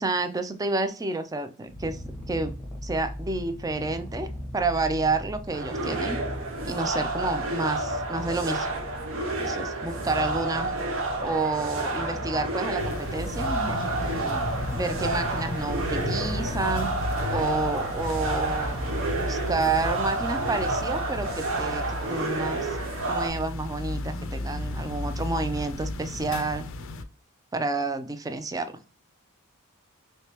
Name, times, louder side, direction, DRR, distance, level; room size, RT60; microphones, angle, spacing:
voice 1, 0.0-2.5 2.8-6.2 6.7-8.7 9.4-10.7 11.2-13.9 14.2-16.9 17.3-18.8 19.1-22.8 23.1-26.6 27.5-28.7, right 3 dB, 15° right, 8 dB, 0.4 m, -30 dB
Purr, 1.7-21.0, left 1 dB, 5° left, 0.9 m, -39 dB
sound 1, 5.5-23.3, right 2 dB, 60° right, 0.8 m, -30 dB
Distant Thunder, 12.8-27.0, left 1 dB, 60° left, 0.5 m, -34 dB
3.3 x 3.2 x 2.9 m, 0.36 s
head